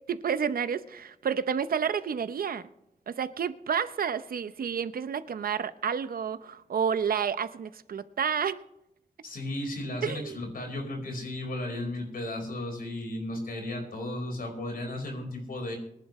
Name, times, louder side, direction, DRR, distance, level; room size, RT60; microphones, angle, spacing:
voice 1, 0.1-2.7 3.1-8.6 10.0-10.4, right 7 dB, 85° right, 13 dB, 0.7 m, -30 dB
voice 2, 9.2-15.8, left 1 dB, 80° left, 2 dB, 4.7 m, -34 dB
23.0 x 11.0 x 3.2 m, 0.83 s
wide cardioid pair, 110°, 15 cm